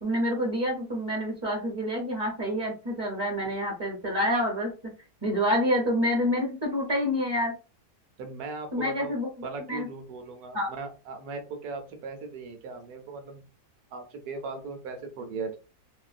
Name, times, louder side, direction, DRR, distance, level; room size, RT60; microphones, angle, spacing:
voice 1, 0.0-4.7 5.2-7.5 8.7-9.3 9.7-9.9 10.5-10.7, equal, 30° right, -1 dB, 0.5 m, -27 dB
voice 2, 8.2-9.1 9.4-13.4 13.9-15.6, right 4 dB, 70° right, 6 dB, 1.2 m, -38 dB
3.0 x 2.5 x 2.5 m, 0.32 s
omnidirectional pair, 1.7 m